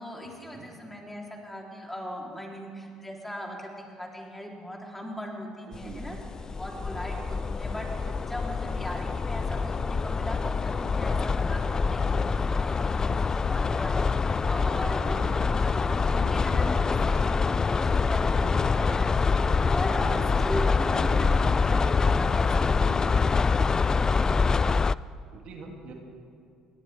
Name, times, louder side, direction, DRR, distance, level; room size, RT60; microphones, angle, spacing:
voice 1, 0.0-6.2 6.6-19.3 19.7-23.8, equal, 10° left, -1 dB, 3.4 m, -39 dB
sound 1, 5.7-24.9, left 4 dB, 30° left, 0.3 m, -25 dB
voice 2, 5.7-6.0 7.1-7.3 8.0-8.2 14.8-15.4 18.4-18.5 18.8-19.0 19.4-19.7 20.0-20.2 25.3-25.9, right 4 dB, 65° right, 1 dB, 2.4 m, -44 dB
21.0 x 17.0 x 3.5 m, 2.4 s
supercardioid pair, 75°, 2 cm